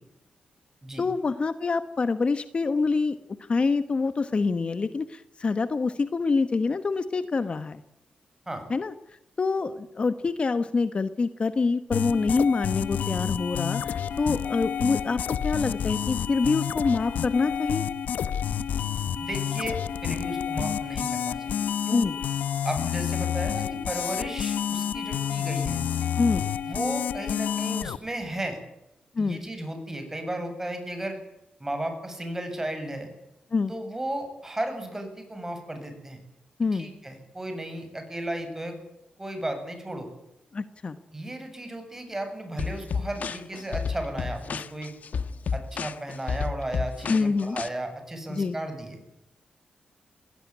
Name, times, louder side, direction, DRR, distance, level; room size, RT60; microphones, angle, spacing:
voice 1, 1.0-7.8 8.7-8.9 9.4-17.8 21.9-22.1 26.2-26.5 29.1-29.4 33.5-33.7 36.6-36.9 40.5-41.0 47.1-47.6 48.3-48.6, left 4 dB, 40° left, 12 dB, 1.2 m, -26 dB
sound 1, 11.9-28.0, left 8 dB, 90° left, 0.8 m, -29 dB
voice 2, 19.2-22.0 22.6-25.8 26.7-28.6 29.2-31.2 31.6-33.1 33.7-36.2 36.7-38.8 39.2-40.1 41.1-44.9 45.5-49.0, right 1 dB, 15° right, 6 dB, 7.7 m, -34 dB
sound 2, 42.6-47.7, left 5 dB, 70° left, 1.3 m, -31 dB
20.5 x 17.0 x 9.6 m, 0.87 s
cardioid pair, 95°, 3 cm